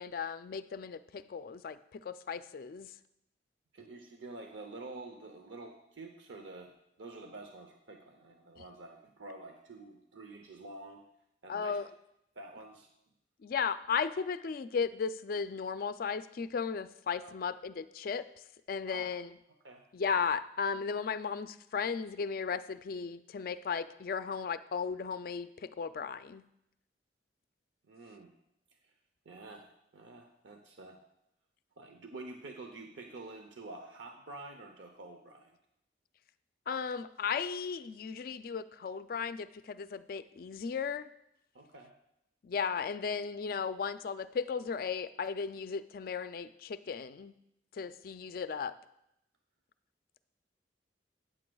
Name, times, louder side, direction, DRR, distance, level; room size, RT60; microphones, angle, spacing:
voice 1, 0.0-2.9 11.5-11.8 13.4-18.3 18.7-19.4 19.9-26.4 36.7-41.1 42.4-47.3 47.7-48.7, left 6 dB, 55° left, 13 dB, 0.4 m, -35 dB
voice 2, 3.7-6.7 7.0-11.1 11.4-11.8 12.4-12.9 17.2-17.3 18.9-19.1 19.6-19.8 27.9-28.3 29.3-29.7 29.9-31.0 31.8-35.5 41.5-41.9, right 2 dB, 90° right, 4 dB, 0.8 m, -48 dB
13.5 x 9.0 x 2.3 m, 0.80 s
head